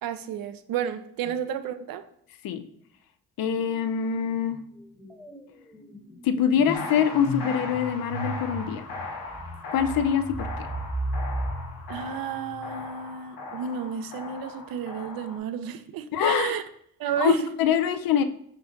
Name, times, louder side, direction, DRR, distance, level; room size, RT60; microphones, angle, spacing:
voice 1, 0.0-2.0 11.9-16.6 17.0-17.5, right 8 dB, 65° right, 0.5 m, -31 dB
voice 2, 3.4-4.6 6.2-8.8 9.7-10.5 16.1-16.6 17.2-18.2, left 8 dB, 65° left, 0.6 m, -24 dB
sound 1, 3.6-3.9 4.2-12.9, right 1 dB, 5° left, 1.0 m, -36 dB
sound 2, 6.7-15.4, left 3 dB, 90° left, 0.9 m, -38 dB
5.0 x 2.6 x 3.7 m
supercardioid pair, 50°, 37 cm